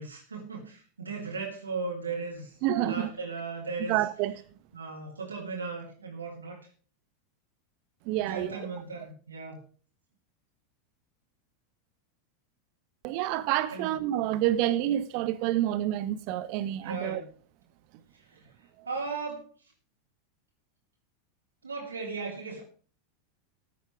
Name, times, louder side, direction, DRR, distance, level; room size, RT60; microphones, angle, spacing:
voice 1, 0.0-2.6 2.8-4.0 4.7-6.6 8.2-9.6 13.7-13.9 16.8-17.3 18.3-18.5 18.8-19.5 21.6-22.6, right 4 dB, 80° right, 3.1 m, -37 dB
voice 2, 2.6-3.1 3.9-4.3 8.0-8.6 13.0-17.2 18.8-18.9, right 13 dB, 50° right, 1.1 m, -28 dB
14.0 x 8.5 x 4.7 m
figure-of-eight pair, 85°, 0 cm